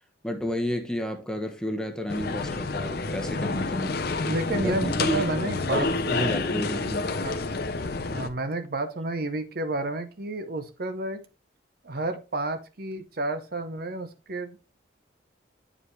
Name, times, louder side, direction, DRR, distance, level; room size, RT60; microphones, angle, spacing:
voice 1, 0.2-4.0 4.9-5.2 5.7-7.2, equal, 5° left, 0.9 m, -31 dB
sound 1, 2.1-8.3, left 3 dB, 50° left, 0.7 m, -29 dB
voice 2, 4.3-6.4 7.2-7.4 8.1-11.2 11.8-14.6, right 2 dB, 50° right, 0.7 m, -31 dB
8.7 x 5.0 x 3.2 m
head